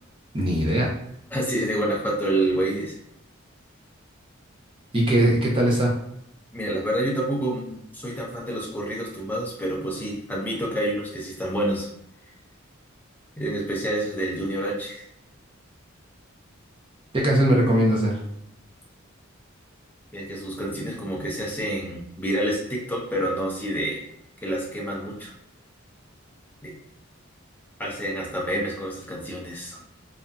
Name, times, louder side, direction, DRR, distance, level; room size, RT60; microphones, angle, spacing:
voice 1, 0.3-0.9 4.9-5.9 17.1-18.2, right 1 dB, 25° right, -4 dB, 0.7 m, -20 dB
voice 2, 1.3-2.9 6.5-11.9 13.4-15.1 20.1-24.0 24.4-25.3 26.6-26.7 27.8-29.8, right 1 dB, 10° left, -3 dB, 0.6 m, -28 dB
2.6 x 2.4 x 2.2 m, 0.75 s
head